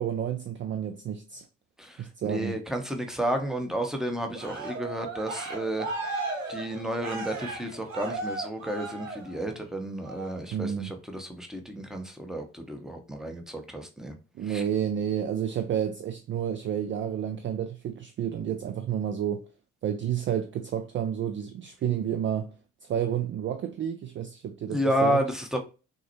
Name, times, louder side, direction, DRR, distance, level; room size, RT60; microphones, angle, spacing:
voice 1, 0.0-1.5 2.0-2.6 10.5-11.0 14.4-19.5 19.8-22.6 22.8-25.2, right 9 dB, 30° right, 0.4 m, -30 dB
voice 2, 1.8-5.9 6.5-14.1 14.5-14.6 24.7-25.6, right 1 dB, ahead, 1.0 m, -31 dB
Cheering, 4.3-9.6 10.0-10.4, right 3 dB, 85° right, 0.8 m, -36 dB
6.0 x 2.2 x 2.9 m
figure-of-eight pair, 45°, 39 cm